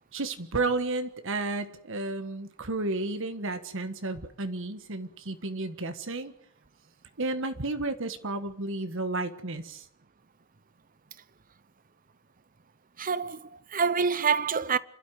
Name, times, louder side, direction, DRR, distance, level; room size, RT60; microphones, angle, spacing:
voice 1, 0.1-6.3 7.2-9.9, right 2 dB, 65° right, 1.6 m, -32 dB
voice 2, 13.0-14.8, right 6 dB, 40° right, 0.9 m, -27 dB
28.0 x 12.5 x 9.6 m
head